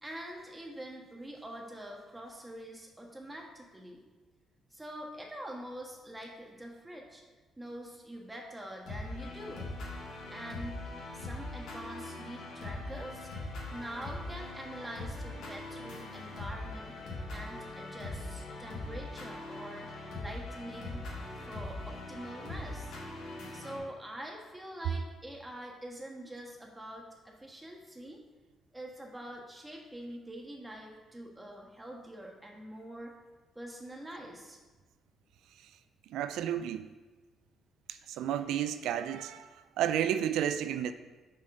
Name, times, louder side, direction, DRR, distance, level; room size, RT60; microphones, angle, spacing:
voice 1, 0.0-4.0 4.7-7.2 7.6-9.7 10.3-10.8 11.1-13.3 13.7-17.0 17.3-21.0 21.3-23.0 23.5-28.2 28.7-33.2 33.5-34.6, right 1 dB, 15° right, 0 dB, 1.5 m, -45 dB
sound 1, 8.9-23.8, left 2 dB, 80° left, 2.3 m, -41 dB
voice 2, 36.1-36.9 37.9-40.9, right 10 dB, 85° right, 11 dB, 0.4 m, -32 dB
6.2 x 4.2 x 6.2 m, 1.3 s
cardioid pair, 90°, 0 cm